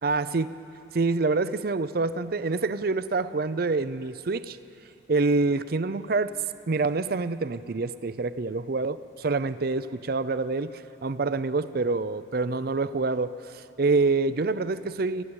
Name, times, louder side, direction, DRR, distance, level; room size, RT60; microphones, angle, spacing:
voice 1, 0.0-0.5 0.9-4.6 5.1-6.3 6.7-15.2, right 3 dB, 55° right, 14 dB, 0.5 m, -26 dB
28.0 x 12.5 x 8.7 m, 2.8 s
head